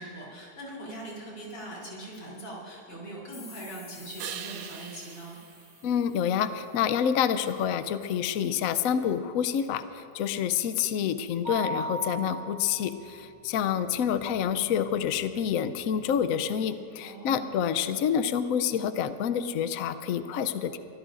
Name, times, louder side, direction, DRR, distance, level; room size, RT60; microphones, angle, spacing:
voice 1, 0.0-5.4 17.0-17.6, right 1 dB, 90° left, -5 dB, 4.1 m, -41 dB
sound 1, 3.3-8.0, left 3 dB, 40° left, 2.1 m, -52 dB
sound 2, 4.2-6.7 12.5-16.5, right 8 dB, 85° right, 1.4 m, -46 dB
voice 2, 5.8-20.8, left 8 dB, 70° left, 11 dB, 0.9 m, -28 dB
Mallet percussion, 11.4-13.2, right 1 dB, 60° right, 2.3 m, -36 dB
23.5 x 16.0 x 2.5 m, 2.5 s
omnidirectional pair, 1.9 m